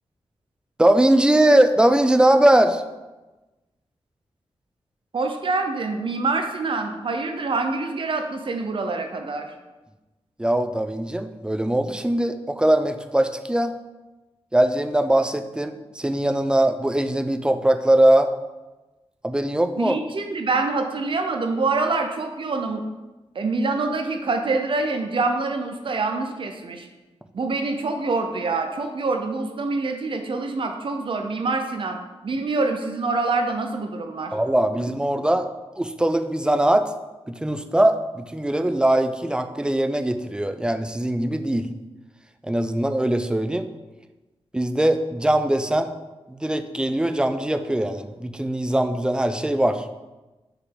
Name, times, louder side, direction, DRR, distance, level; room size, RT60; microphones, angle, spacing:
voice 1, 0.8-2.8 10.4-13.7 14.5-18.3 19.2-20.0 34.3-35.5 35.8-36.9 37.3-41.7 42.4-43.7 44.5-45.9 46.3-49.9, right 1 dB, 10° right, 8 dB, 0.3 m, -21 dB
voice 2, 5.1-9.5 19.8-22.8 23.3-26.9 27.3-32.0 32.2-34.3, right 3 dB, 50° right, 5 dB, 0.6 m, -25 dB
6.4 x 4.9 x 3.8 m, 1.1 s
wide cardioid pair, 175°, 11 cm